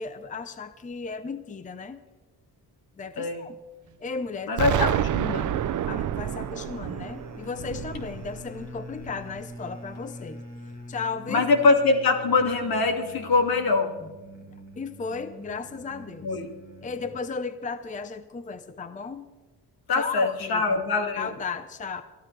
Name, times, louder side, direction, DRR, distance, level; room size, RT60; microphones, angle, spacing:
voice 1, 0.0-2.0 3.0-3.6 4.0-4.8 5.9-10.4 10.9-11.4 14.8-16.3 16.8-19.3 20.0-20.8 21.2-22.0, left 5 dB, 20° left, 12 dB, 0.6 m, -35 dB
voice 2, 4.5-5.6 11.3-13.9 16.2-16.5 19.9-21.3, left 3 dB, 70° left, 4 dB, 2.3 m, -23 dB
Explosion, 4.6-9.4, right 11 dB, 50° right, 0.5 m, -29 dB
sound 1, 5.3-17.2, left 2 dB, 45° left, 2.9 m, -44 dB
23.0 x 13.5 x 3.3 m, 1.2 s
cardioid pair, 140°, 38 cm